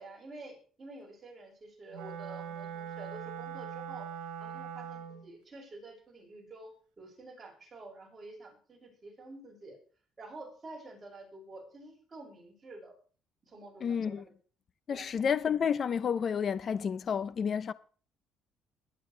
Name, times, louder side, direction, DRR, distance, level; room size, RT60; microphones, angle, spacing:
voice 1, 0.0-4.1 4.4-6.7 7.0-9.8 10.2-13.0 13.5-14.2 14.9-15.0, right 2 dB, 25° right, 6.9 m, -49 dB
Wind instrument woodwind instrument, 1.9-5.3, right 8 dB, 90° right, 1.8 m, -41 dB
voice 2, 13.8-14.2 14.9-17.7, left 7 dB, 45° left, 0.8 m, -30 dB
21.5 x 9.5 x 3.4 m
cardioid pair, 115°, 0 cm